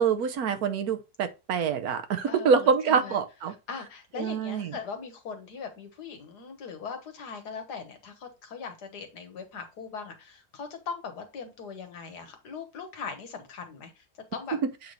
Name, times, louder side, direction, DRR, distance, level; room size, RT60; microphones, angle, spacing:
voice 1, 0.0-3.5 4.2-4.8, right 6 dB, 70° right, 1.3 m, -26 dB
voice 2, 2.3-3.2 3.7-14.0 14.3-14.6, left 5 dB, 85° left, 1.8 m, -40 dB
8.2 x 3.2 x 3.9 m
omnidirectional pair, 1.7 m